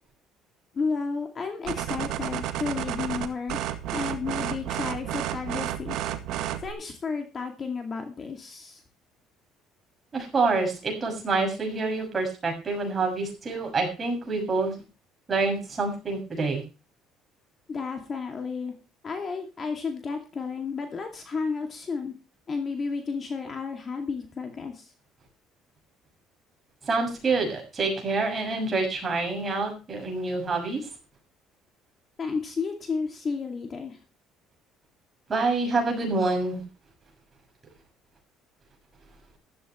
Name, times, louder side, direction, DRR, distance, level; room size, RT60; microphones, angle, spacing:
voice 1, 0.7-6.0 6.6-8.8 17.7-18.7 19.0-22.1 22.5-24.9 32.2-34.0, left 5 dB, 30° left, 5 dB, 2.4 m, -32 dB
sound 1, 1.7-6.7, right 12 dB, 70° right, 1.8 m, -31 dB
voice 2, 10.1-14.8 15.3-16.6 26.8-30.9 35.3-36.6, right 3 dB, 25° right, 2 dB, 6.6 m, -27 dB
15.0 x 13.0 x 3.1 m, 0.32 s
cardioid pair, 150°, 0 cm